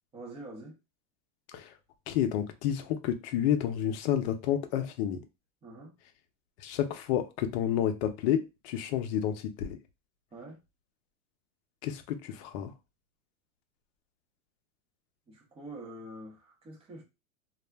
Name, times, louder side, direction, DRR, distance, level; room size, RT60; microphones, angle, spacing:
voice 1, 0.1-0.8 5.6-5.9 10.3-10.6 15.3-17.0, right 2 dB, 15° right, 0.5 m, -45 dB
voice 2, 2.1-5.2 6.6-9.8 11.8-12.7, left 10 dB, 50° left, 0.6 m, -30 dB
2.4 x 2.0 x 3.3 m
supercardioid pair, 145°, 41 cm